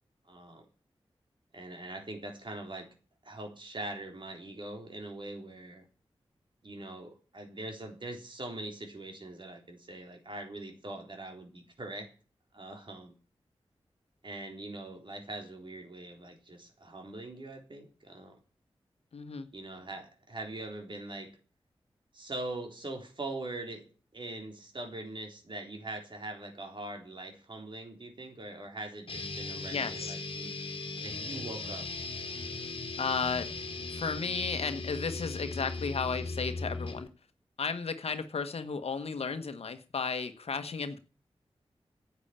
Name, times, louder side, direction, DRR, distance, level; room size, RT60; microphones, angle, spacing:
voice 1, 0.3-0.7 1.5-2.9 3.2-5.8 6.6-12.1 12.5-13.1 14.2-18.4 19.5-21.4 22.1-30.5 31.0-31.9, right 2 dB, 50° right, 3 dB, 3.8 m, -42 dB
voice 2, 19.1-19.5 29.7-30.1 32.6-32.7 33.0-33.5 33.9-37.1 37.6-41.0, left 5 dB, 75° left, 10 dB, 1.3 m, -34 dB
sound 1, 29.1-37.1, left 3 dB, 60° left, 1.8 m, -38 dB
10.0 x 8.2 x 8.8 m, 0.37 s
cardioid pair, 45°, 10 cm